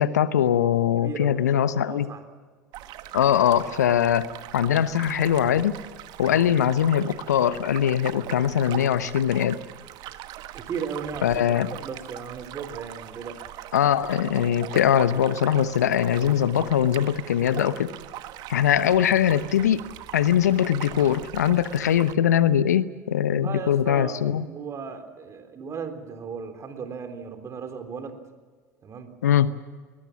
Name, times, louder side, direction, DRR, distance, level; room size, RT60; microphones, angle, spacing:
voice 1, 0.0-2.1 3.1-5.8 6.2-9.6 11.2-11.7 13.7-17.9 18.5-24.4 29.2-29.5, left 10 dB, 75° left, 15 dB, 0.9 m, -22 dB
voice 2, 1.0-2.2 6.2-6.5 10.5-13.4 23.3-28.2 28.8-29.1, right 6 dB, 35° right, 8 dB, 3.7 m, -36 dB
sound 1, 2.7-22.1, right 13 dB, 50° right, 1.4 m, -40 dB
21.5 x 20.5 x 7.4 m, 1.5 s
figure-of-eight pair, 70°, 9 cm